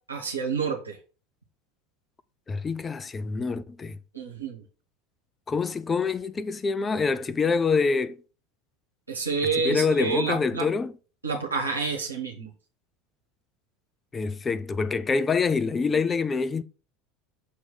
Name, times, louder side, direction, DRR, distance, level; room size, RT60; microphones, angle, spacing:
voice 1, 0.1-1.0 4.1-4.6 9.1-10.7 11.2-12.5, right 5 dB, 90° right, 1.1 m, -28 dB
voice 2, 2.5-4.0 5.5-8.2 9.6-10.9 14.1-16.6, left 4 dB, 25° left, 0.5 m, -26 dB
6.6 x 3.1 x 5.3 m
figure-of-eight pair, 75°, 0 cm